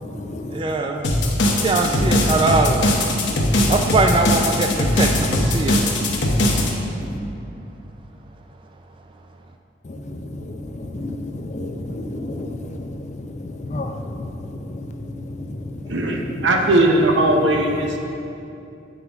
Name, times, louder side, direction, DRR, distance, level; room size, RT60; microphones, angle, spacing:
voice 1, 0.5-1.0 1.6-2.9 3.7-5.8, right 3 dB, 25° right, 4 dB, 0.3 m, -21 dB
sound 1, 1.0-6.7, left 1 dB, 75° left, 1.0 m, -19 dB
voice 2, 10.9-12.6 13.7-13.9, left 2 dB, 40° left, 4 dB, 0.5 m, -30 dB
voice 3, 15.9-18.0, right 1 dB, 85° right, 2 dB, 0.8 m, -18 dB
9.1 x 5.7 x 3.5 m, 2.6 s
head